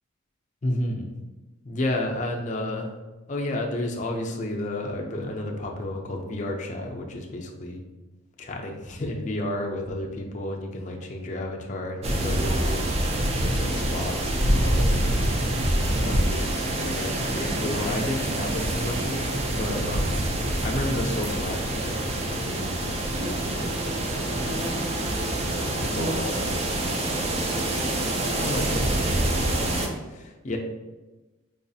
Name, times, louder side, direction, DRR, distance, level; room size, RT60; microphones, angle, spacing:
voice 1, 0.6-1.1 1.6-2.9 3.3-7.8 8.4-15.5 16.0-20.2 20.6-24.7 25.4-27.8 28.3-30.6, left 1 dB, 40° left, 1 dB, 0.5 m, -32 dB
sound 1, 12.0-29.9, right 1 dB, 30° right, 0.4 m, -26 dB
4.7 x 2.4 x 2.7 m, 1.2 s
head